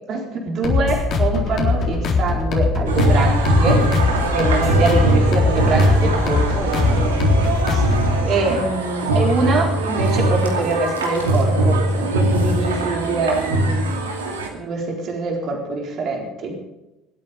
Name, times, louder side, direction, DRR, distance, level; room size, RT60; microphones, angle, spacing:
voice 1, 0.1-3.8 4.3-7.5 7.7-7.8 8.2-13.9 14.5-16.7, right 3 dB, 50° right, 1 dB, 4.1 m, -24 dB
sound 1, 0.6-8.1, left 4 dB, 50° left, 3.8 m, -21 dB
sound 2, 2.9-14.5, right 1 dB, 90° right, 2.4 m, -20 dB
25.0 x 8.9 x 5.2 m, 0.98 s
hypercardioid pair, 70°, 0 cm